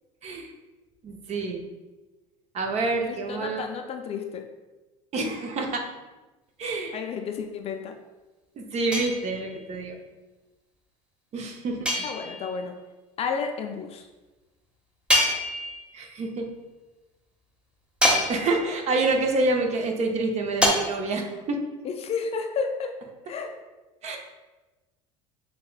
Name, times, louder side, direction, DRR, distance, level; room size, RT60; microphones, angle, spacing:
voice 1, 1.0-1.6 2.5-3.7 5.1-5.8 6.6-7.0 8.6-10.0 11.3-11.9 15.9-16.5 18.3-21.6 24.0-24.2, right 3 dB, 40° right, 2 dB, 0.7 m, -27 dB
voice 2, 3.1-4.4 6.9-7.9 12.0-12.8 13.2-14.1 21.8-22.9 23.3-23.5, left 5 dB, 35° left, 5 dB, 0.4 m, -31 dB
sound 1, 8.9-9.7 11.9-12.6 15.1-16.0 18.0-18.8 20.6-20.7, left 1 dB, 5° right, 0.8 m, -25 dB
6.7 x 2.2 x 2.3 m, 1.2 s
hypercardioid pair, 75°, 17 cm